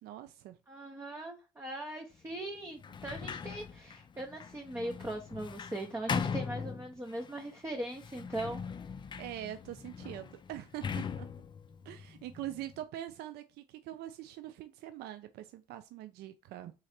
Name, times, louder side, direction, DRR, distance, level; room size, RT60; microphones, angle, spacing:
voice 1, 0.0-0.6 9.2-11.3 11.8-16.7, right 13 dB, 75° right, 0.4 m, -43 dB
voice 2, 0.7-8.6, right 1 dB, 15° right, 0.7 m, -40 dB
Sliding door, 2.8-7.3 7.9-12.8, left 6 dB, 30° left, 0.4 m, -40 dB
3.7 x 3.2 x 4.2 m
cardioid pair, 110°, 17 cm